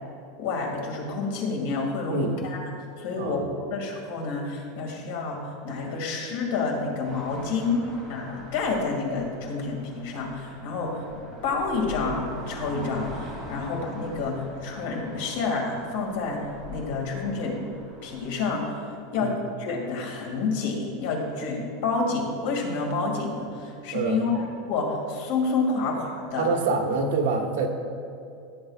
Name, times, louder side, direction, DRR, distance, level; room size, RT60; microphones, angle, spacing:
voice 1, 0.4-2.6 3.0-3.4 3.7-11.0 11.4-16.4 16.7-17.7 18.0-19.3 19.6-26.5, left 4 dB, 65° left, 0 dB, 2.2 m, -29 dB
sound 1, 7.0-18.6, equal, 5° right, 2.2 m, -43 dB
voice 2, 23.9-24.2 26.4-27.7, right 4 dB, 70° right, 3 dB, 1.2 m, -25 dB
16.0 x 7.9 x 2.4 m, 2.5 s
supercardioid pair, 170°, 0 cm